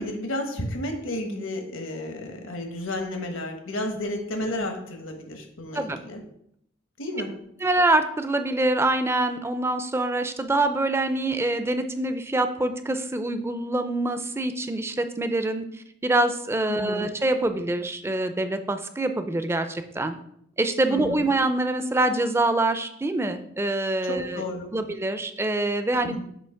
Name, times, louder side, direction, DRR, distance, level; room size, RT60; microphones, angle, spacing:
voice 1, 0.0-6.2 7.0-7.3 16.7-17.1 20.9-21.3 24.0-24.7 25.9-26.2, left 1 dB, 80° left, 3 dB, 1.3 m, -32 dB
voice 2, 7.6-15.6 16.0-20.1 20.6-24.4 24.7-26.2, right 2 dB, 15° right, 8 dB, 0.4 m, -25 dB
7.7 x 2.9 x 5.7 m, 0.72 s
head